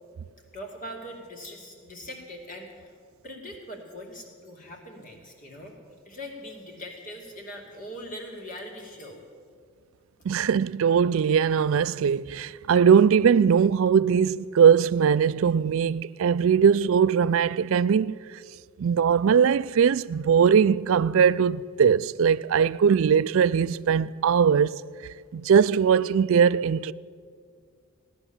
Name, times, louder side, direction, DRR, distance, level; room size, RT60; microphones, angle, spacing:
voice 1, 0.5-2.9 3.2-5.8 6.0-9.2, equal, 35° left, 2.4 m, -41 dB
voice 2, 10.3-18.2 18.8-24.8 25.3-26.9, right 7 dB, 60° right, 0.3 m, -20 dB
17.0 x 11.0 x 7.1 m
head